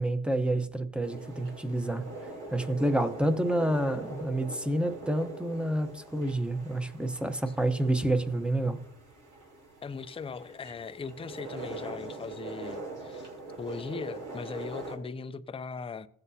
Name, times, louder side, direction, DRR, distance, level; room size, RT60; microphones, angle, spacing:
voice 1, 0.0-2.0 2.5-8.8, right 1 dB, 5° right, 0.8 m, -28 dB
sound 1, 1.0-15.0, right 2 dB, 85° right, 3.2 m, -43 dB
voice 2, 9.8-13.3 13.6-16.1, left 5 dB, 20° left, 0.4 m, -39 dB
16.0 x 8.0 x 2.8 m
cardioid pair, 90°, 30 cm